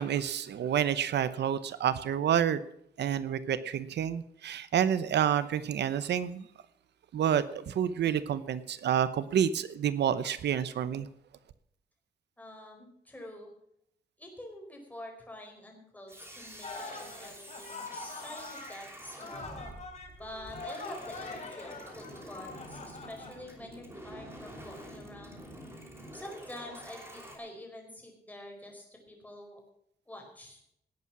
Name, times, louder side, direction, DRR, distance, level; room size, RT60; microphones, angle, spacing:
voice 1, 0.0-2.6 3.0-6.5 7.1-11.1, right 9 dB, 85° right, 14 dB, 0.9 m, -29 dB
voice 2, 12.4-13.5 14.2-19.6 20.2-25.5 26.1-29.6 30.1-30.6, left 1 dB, 10° left, 1 dB, 4.8 m, -47 dB
sound 1, 16.1-27.4, equal, 15° right, 5.5 m, -48 dB
sound 2, 16.6-18.8 19.2-23.4, left 3 dB, 40° left, 3.9 m, -43 dB
18.5 x 8.6 x 6.1 m, 0.70 s
wide cardioid pair, 150°, 17 cm